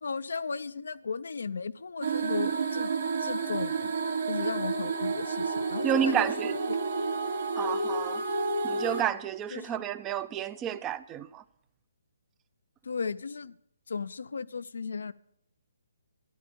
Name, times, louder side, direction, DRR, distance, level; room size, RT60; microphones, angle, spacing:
voice 1, 0.0-2.9 3.2-3.9 4.3-6.8 9.5-9.8 12.8-13.6 13.9-15.1, left 5 dB, 75° left, 0.5 m, -35 dB
sound 1, 2.0-9.0, right 4 dB, 65° right, 1.5 m, -30 dB
voice 2, 5.8-6.6 7.6-8.2 8.6-11.4, right 9 dB, 20° right, 0.5 m, -30 dB
13.0 x 10.5 x 5.2 m
hypercardioid pair, 150°, 0 cm